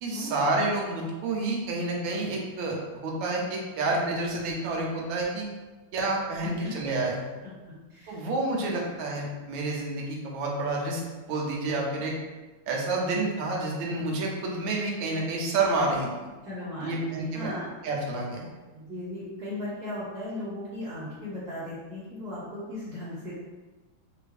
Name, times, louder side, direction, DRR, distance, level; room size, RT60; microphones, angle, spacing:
voice 1, 0.0-5.5 5.9-7.3 8.1-11.0 11.3-12.1 12.7-16.1 16.8-17.5 17.8-18.5, right 2 dB, 75° right, -1 dB, 1.4 m, -29 dB
voice 2, 6.4-6.7 7.9-8.2 8.5-8.6 16.4-17.6 18.7-23.3, left 1 dB, 40° right, -11 dB, 1.7 m, -37 dB
3.4 x 3.2 x 2.4 m, 1.2 s
omnidirectional pair, 2.3 m